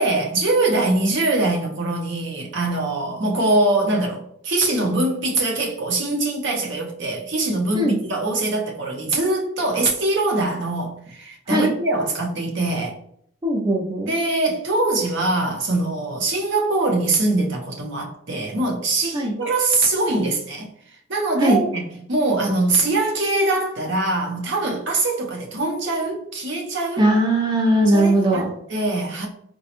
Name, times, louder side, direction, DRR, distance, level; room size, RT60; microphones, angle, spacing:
voice 1, 0.0-13.0 14.1-20.7 21.1-21.8 22.1-27.1 27.8-29.3, right 2 dB, 60° right, 0.7 m, -23 dB
voice 2, 13.4-14.1 19.1-19.3 21.4-21.6 27.0-28.5, right 1 dB, 20° right, 0.4 m, -19 dB
4.0 x 2.2 x 2.9 m
head